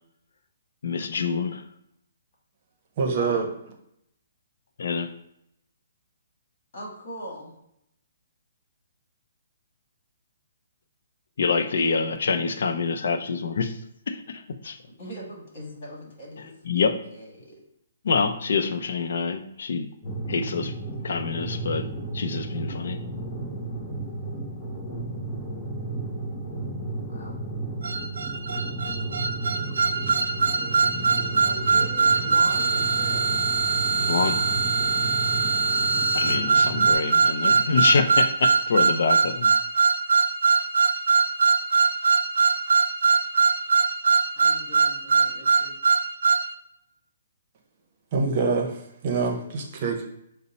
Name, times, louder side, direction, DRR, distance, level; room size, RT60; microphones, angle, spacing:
voice 1, 0.8-1.6 4.8-5.1 11.4-13.8 14.1-14.8 16.7-17.0 18.0-19.9 20.3-20.7 21.0-23.0 33.9-34.4 36.1-39.5, left 5 dB, 65° left, 8 dB, 0.4 m, -26 dB
voice 2, 3.0-3.5 48.1-48.8 49.0-50.0, right 4 dB, 35° right, 2 dB, 0.7 m, -25 dB
voice 3, 6.7-7.5 15.0-17.6 27.1-27.4 31.4-33.4 36.2-36.4 44.4-45.8, equal, 45° left, -2 dB, 1.7 m, -41 dB
sound 1, 20.0-36.9, right 2 dB, 25° left, 1.5 m, -33 dB
sound 2, 27.8-46.5, right 4 dB, 85° right, 0.4 m, -22 dB
5.3 x 2.0 x 4.0 m, 0.77 s
hypercardioid pair, 165°, 0 cm